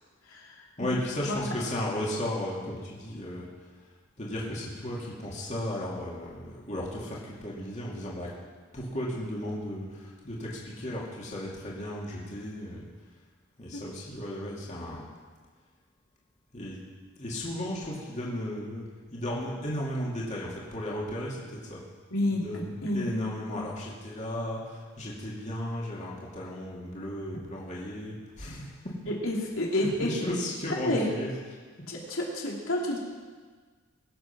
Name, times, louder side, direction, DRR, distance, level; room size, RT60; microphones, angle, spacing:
voice 1, 0.3-1.0 1.3-1.5 13.7-13.8 22.1-22.4 22.8-23.1 29.2-30.1 30.8-31.1 31.9-33.0, left 1 dB, 80° left, -3 dB, 3.1 m, -29 dB
voice 2, 0.8-3.5 4.2-8.3 8.7-12.8 13.6-15.1 16.5-16.8 17.2-18.8 19.1-21.8 22.3-28.9 29.7-31.3, left 1 dB, 35° left, -5 dB, 2.7 m, -35 dB
22.0 x 7.8 x 6.1 m, 1.5 s
head